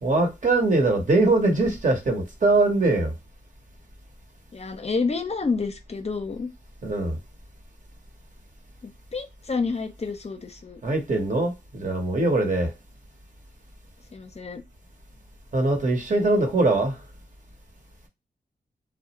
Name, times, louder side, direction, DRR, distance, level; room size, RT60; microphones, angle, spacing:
voice 1, 0.0-3.1 6.8-7.2 10.8-12.7 15.5-17.0, right 2 dB, 45° right, 1.0 m, -22 dB
voice 2, 4.5-6.5 8.8-10.8 14.1-14.6, left 4 dB, 35° left, 0.6 m, -29 dB
2.4 x 2.0 x 2.9 m
cardioid pair, 70°, 18 cm